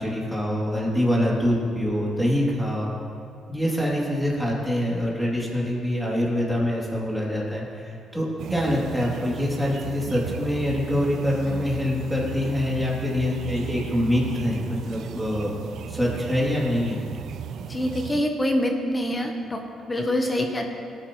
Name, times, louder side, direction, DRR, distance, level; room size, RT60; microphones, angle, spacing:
voice 1, 0.0-2.9 3.5-15.5 15.9-17.0, left 1 dB, ahead, -5 dB, 2.8 m, -25 dB
sound 1, 8.4-18.2, right 8 dB, 65° right, 0.4 m, -36 dB
voice 2, 17.7-20.7, left 1 dB, 20° left, 3 dB, 1.0 m, -25 dB
18.5 x 10.0 x 3.1 m, 2.5 s
cardioid pair, 115°, 0 cm